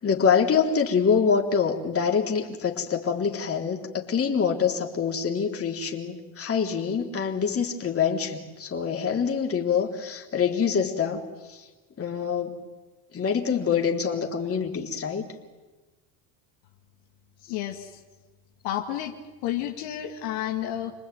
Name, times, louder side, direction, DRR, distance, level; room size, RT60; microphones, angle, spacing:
voice 1, 0.0-11.2 11.5-11.7 12.0-12.6 13.1-15.2, left 6 dB, 30° left, 0 dB, 3.7 m, -25 dB
voice 2, 17.4-18.0 18.6-19.1 19.4-20.9, left 12 dB, 75° left, 2 dB, 2.5 m, -31 dB
28.5 x 20.0 x 9.3 m, 1.2 s
supercardioid pair, 100°, 45 cm